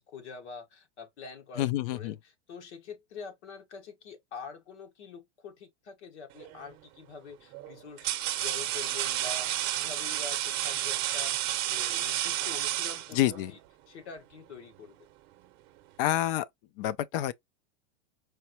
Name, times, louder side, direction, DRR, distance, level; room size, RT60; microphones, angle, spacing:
voice 1, 0.0-9.5 9.7-13.6 13.9-15.1, left 5 dB, 80° left, 1.5 m, -45 dB
voice 2, 1.6-2.1 13.1-13.5 16.0-16.5 16.8-17.3, left 14 dB, 55° left, 0.5 m, -28 dB
sound 1, 6.4-6.7 7.5-13.5, right 14 dB, 35° right, 0.7 m, -31 dB
4.5 x 2.6 x 3.0 m
supercardioid pair, 150°, 34 cm